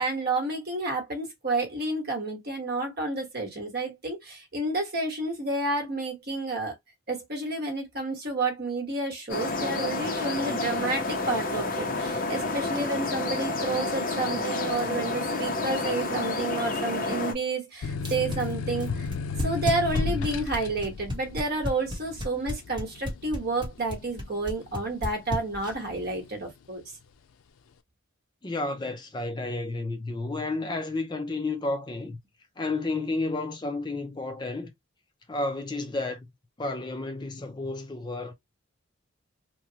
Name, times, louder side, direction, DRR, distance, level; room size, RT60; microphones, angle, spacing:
voice 1, 0.0-6.7 7.1-19.1 19.4-26.8, right 2 dB, 50° right, 1.1 m, -30 dB
sound 1, 9.3-17.3, left 3 dB, 40° left, 0.8 m, -29 dB
sound 2, 17.8-25.1 25.5-26.2, left 5 dB, 90° left, 0.4 m, -34 dB
sound 3, 18.0-25.9, left 1 dB, 20° right, 1.0 m, -31 dB
voice 2, 28.4-32.2 32.6-34.7 35.3-36.3 36.6-38.3, left 2 dB, 20° left, 0.4 m, -31 dB
3.1 x 2.2 x 2.7 m
head